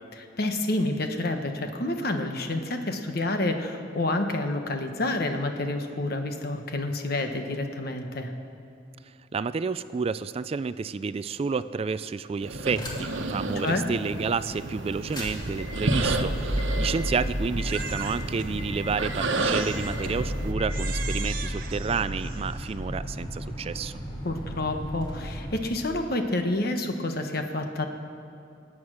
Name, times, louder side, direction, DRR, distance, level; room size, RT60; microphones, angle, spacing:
voice 1, 0.4-8.3 13.6-13.9 24.2-27.9, left 2 dB, 55° left, 5 dB, 1.3 m, -28 dB
voice 2, 9.3-24.0, right 5 dB, 30° right, 14 dB, 0.3 m, -30 dB
sound 1, 12.4-20.5, right 2 dB, 85° right, 1.1 m, -31 dB
sound 2, 12.8-13.2 13.7-13.8 14.9-25.6, equal, 25° left, 2.6 m, -33 dB
Crying sobbing, 17.7-18.5 19.4-20.2 20.7-22.8, right 7 dB, 50° right, 0.9 m, -39 dB
24.5 x 8.8 x 6.3 m, 2.5 s
head